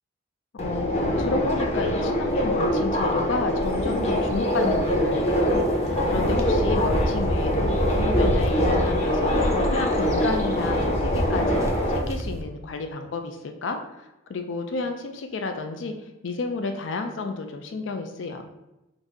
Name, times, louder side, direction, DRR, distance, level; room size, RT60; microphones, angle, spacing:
voice 1, 0.5-11.6 11.9-15.9 16.2-18.5, left 3 dB, 80° left, 5 dB, 0.4 m, -31 dB
Subway metro underground, 0.6-12.0, left 1 dB, 35° left, 0.8 m, -24 dB
sound 1, 3.6-12.4, right 1 dB, 15° right, 0.4 m, -30 dB
4.0 x 2.7 x 4.5 m, 0.96 s
head